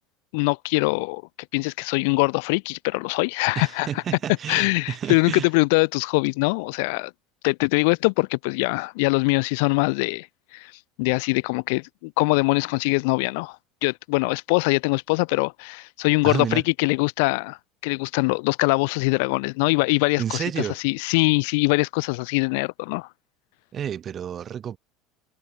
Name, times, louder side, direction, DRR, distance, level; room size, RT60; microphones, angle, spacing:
voice 1, 0.3-1.2 1.5-4.0 4.5-7.1 7.4-10.3 10.5-10.7 11.0-13.6 13.8-17.6 17.8-23.1, left 30 dB, 60° left, 0.5 m, -23 dB
voice 2, 3.6-5.5 16.2-16.6 20.2-20.8 23.7-24.8, right 9 dB, 35° right, 1.0 m, -30 dB
figure-of-eight pair, 70°, 0 cm